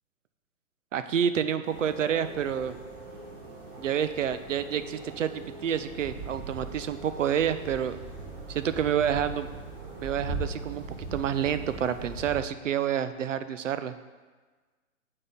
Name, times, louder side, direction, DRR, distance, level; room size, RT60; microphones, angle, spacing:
voice 1, 0.9-2.7 3.8-8.0 8.5-9.5 10.0-13.9, right 9 dB, 60° right, 11 dB, 0.5 m, -28 dB
sound 1, 1.6-12.4, right 3 dB, 35° right, 1.7 m, -40 dB
7.5 x 4.1 x 3.8 m, 1.3 s
figure-of-eight pair, 130°, 42 cm